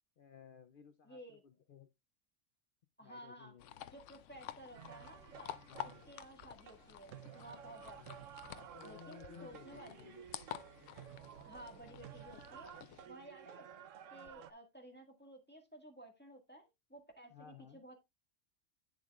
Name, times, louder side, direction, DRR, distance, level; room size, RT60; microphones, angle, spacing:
voice 1, 0.2-1.9 3.0-3.7 4.3-4.4 5.6-6.1 7.9-8.2 8.6-10.3 17.3-17.8, left 8 dB, 55° left, 0.7 m, -57 dB
voice 2, 1.0-1.4 3.0-3.6 3.9-5.5 6.1-8.3 8.8-9.9 11.4-12.7 13.1-13.7 14.1-17.9, right 1 dB, 10° left, 1.6 m, -54 dB
sound 1, 3.6-13.1, left 11 dB, 75° left, 0.9 m, -51 dB
sound 2, 4.7-14.5, right 10 dB, 85° right, 1.0 m, -54 dB
9.4 x 7.2 x 2.4 m
omnidirectional pair, 1.3 m